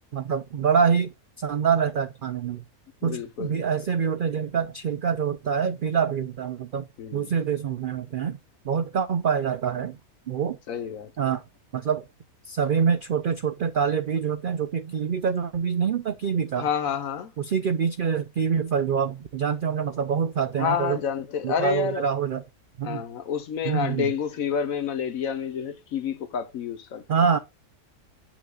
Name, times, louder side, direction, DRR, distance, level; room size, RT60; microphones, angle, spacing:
voice 1, 0.1-2.6 3.0-8.4 8.6-10.0 10.3-10.6 11.2-11.4 11.7-12.0 12.4-16.7 17.4-21.0 21.4-22.4 22.8-23.0 23.7-24.1 27.1-27.4, right 7 dB, 75° right, 0.4 m, -25 dB
voice 2, 3.0-3.7 7.0-7.3 10.7-11.1 16.5-17.3 20.5-22.1 22.8-27.0, left 7 dB, 65° left, 1.3 m, -29 dB
8.2 x 5.8 x 2.4 m
omnidirectional pair, 1.6 m